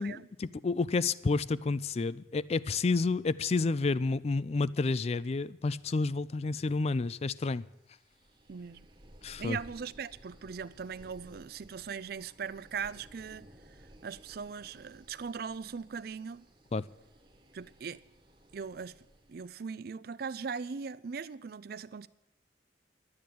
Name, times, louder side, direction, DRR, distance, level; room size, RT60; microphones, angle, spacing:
voice 1, 0.4-7.6 9.2-9.6 16.7-16.9, left 3 dB, 35° left, 0.4 m, -30 dB
sound 1, 7.9-19.6, right 1 dB, 30° right, 1.3 m, -58 dB
voice 2, 8.5-8.9 9.4-16.4 17.5-18.0 18.5-22.1, right 6 dB, 55° right, 0.4 m, -40 dB
12.0 x 8.7 x 9.2 m
head